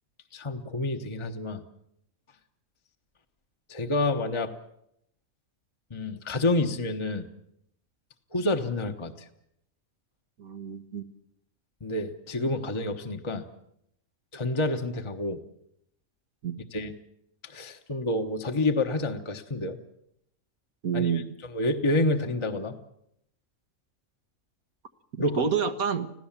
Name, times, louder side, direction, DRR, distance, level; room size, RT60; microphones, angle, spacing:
voice 1, 0.3-1.6 3.7-4.5 5.9-7.3 8.3-9.3 11.8-13.5 14.3-15.4 16.7-16.9 17.4-19.8 20.9-22.8 25.2-25.4, left 2 dB, 25° left, 5 dB, 1.1 m, -28 dB
voice 2, 10.4-11.0 16.4-16.6 20.8-21.3 25.1-26.1, right 6 dB, 85° right, 9 dB, 1.8 m, -28 dB
26.0 x 16.5 x 7.3 m, 0.76 s
omnidirectional pair, 1.5 m